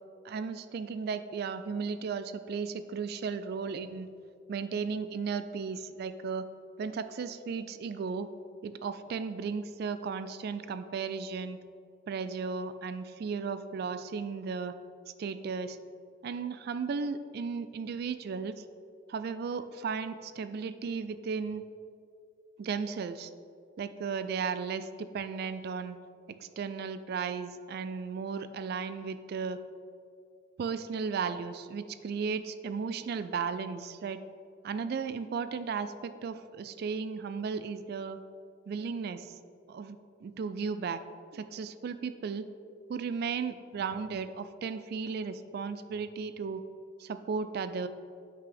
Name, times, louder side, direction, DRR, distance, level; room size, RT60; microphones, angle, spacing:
voice 1, 0.2-4.1 4.5-6.5 6.8-8.3 8.6-11.6 12.1-14.7 15.2-15.8 16.2-18.6 19.1-21.6 22.6-23.3 23.8-26.0 26.4-29.6 30.6-34.2 34.6-38.2 38.7-39.3 39.7-41.0 41.3-42.5 42.9-46.6 47.0-47.9, right 5 dB, 55° right, 11 dB, 0.3 m, -35 dB
8.3 x 6.0 x 3.4 m, 2.3 s
head